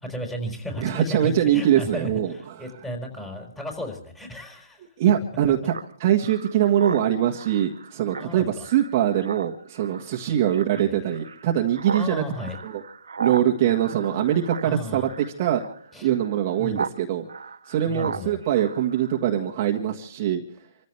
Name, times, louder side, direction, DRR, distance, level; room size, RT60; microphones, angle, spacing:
voice 1, 0.0-4.8 8.1-8.7 10.7-11.0 11.9-12.6 14.6-15.1 15.9-16.1 16.6-16.9 17.8-18.4, left 1 dB, 10° left, 2 dB, 4.7 m, -34 dB
voice 2, 0.8-2.6 5.0-5.7 6.0-12.2 12.6-12.8 13.2-15.6 16.0-17.3 17.7-20.4, right 10 dB, 35° right, 0 dB, 1.6 m, -23 dB
Speech synthesizer, 5.7-17.0 17.3-19.5, right 5 dB, 80° right, 1.3 m, -37 dB
27.5 x 14.5 x 3.4 m, 0.62 s
hypercardioid pair, 155°, 2 cm